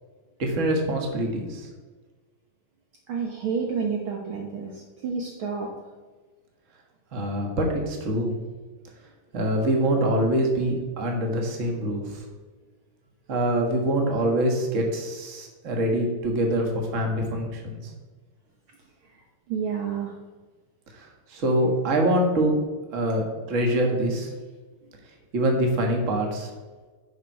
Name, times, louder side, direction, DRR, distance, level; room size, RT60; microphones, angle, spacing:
voice 1, 0.4-1.7 7.1-8.4 9.3-12.2 13.3-17.8 21.3-22.6 22.9-24.3 25.3-26.5, right 1 dB, 40° right, 2 dB, 1.0 m, -24 dB
voice 2, 3.1-4.7 5.0-5.7 19.5-20.1, right 6 dB, 85° right, 0 dB, 1.1 m, -29 dB
10.5 x 5.9 x 4.7 m, 1.3 s
omnidirectional pair, 3.8 m